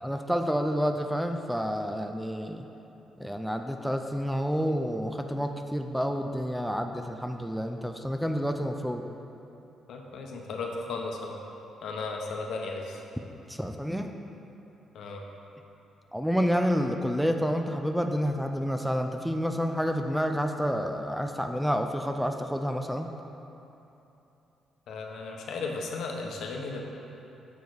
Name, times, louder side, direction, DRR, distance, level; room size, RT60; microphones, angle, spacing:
voice 1, 0.0-2.7 3.2-9.0 13.5-14.1 16.1-23.1, equal, ahead, 5 dB, 0.4 m, -29 dB
voice 2, 9.9-11.4 11.8-13.0 14.9-15.2 24.9-26.8, left 3 dB, 75° left, 1 dB, 0.8 m, -35 dB
6.9 x 4.4 x 4.7 m, 3.0 s
cardioid pair, 90°, 0 cm